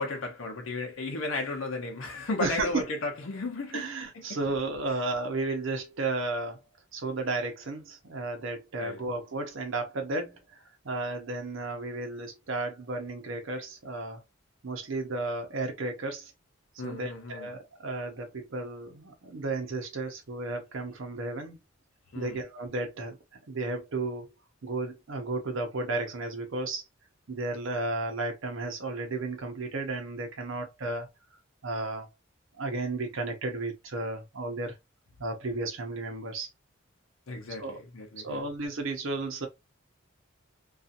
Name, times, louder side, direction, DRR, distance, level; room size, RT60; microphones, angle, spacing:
voice 1, 0.0-3.9 4.1-4.4 4.9-5.0 8.8-9.0 16.8-17.5 22.1-22.4 37.3-38.4, left 3 dB, 70° left, 0.7 m, -34 dB
voice 2, 2.4-2.8 3.7-6.6 6.9-14.2 14.6-16.3 16.8-21.6 22.1-23.2 23.5-24.3 24.6-26.8 27.3-31.1 31.6-32.1 32.6-34.7 35.2-36.5 37.6-37.8 38.2-39.5, right 2 dB, 70° right, 0.7 m, -33 dB
2.7 x 2.4 x 2.4 m
head